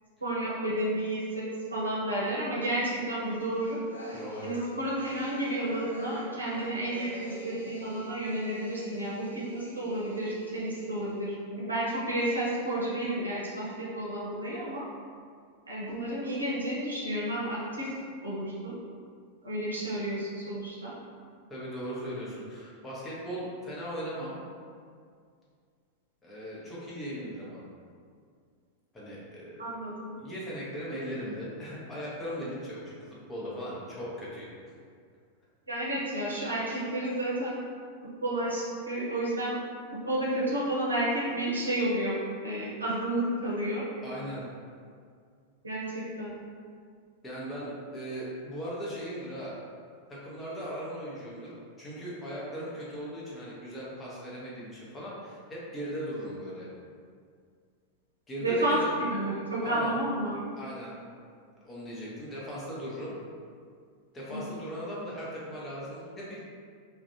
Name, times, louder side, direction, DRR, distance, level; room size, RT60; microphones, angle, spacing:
voice 1, 0.2-3.8 4.4-14.8 15.7-17.9 18.2-18.8 19.4-20.9 29.6-30.2 35.7-37.6 38.2-39.6 40.0-42.2 42.4-43.8 45.6-46.3 58.4-60.4 64.3-64.6, right 1 dB, 80° right, -7 dB, 0.6 m, -31 dB
sound 1, 3.3-11.2, right 1 dB, 75° left, 0.4 m, -45 dB
voice 2, 4.1-4.5 21.5-24.4 26.2-27.6 28.9-29.6 30.1-34.7 44.0-44.4 47.2-49.5 50.1-56.7 58.3-58.9 59.6-60.0 60.6-60.9 61.6-63.1 64.1-66.4, equal, 15° left, -7 dB, 0.7 m, -38 dB
2.4 x 2.1 x 2.7 m, 2.1 s
figure-of-eight pair, 90°, 0 cm